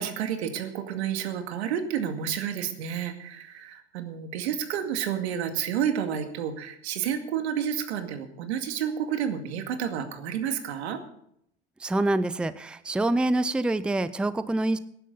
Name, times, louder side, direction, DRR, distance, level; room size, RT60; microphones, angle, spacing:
voice 1, 0.0-11.0, right 8 dB, 75° right, 6 dB, 2.2 m, -30 dB
voice 2, 11.8-14.8, right 2 dB, 5° right, 14 dB, 0.6 m, -26 dB
19.0 x 10.5 x 4.0 m, 0.73 s
hypercardioid pair, 100°, 33 cm